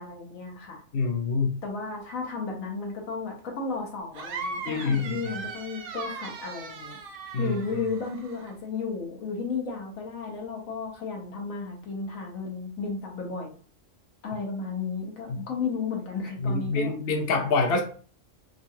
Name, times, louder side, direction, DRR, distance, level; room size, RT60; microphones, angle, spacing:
voice 1, 0.0-0.8 1.6-7.0 7.4-13.6 14.2-16.9, left 4 dB, 75° left, 0 dB, 1.3 m, -33 dB
voice 2, 0.9-1.5 4.7-5.3 7.3-7.9 15.3-15.5 16.4-17.8, left 4 dB, 55° left, 3 dB, 0.7 m, -26 dB
sound 1, 4.1-8.5, right 4 dB, 60° right, 0.6 m, -38 dB
3.7 x 2.4 x 2.7 m, 0.42 s
omnidirectional pair, 1.4 m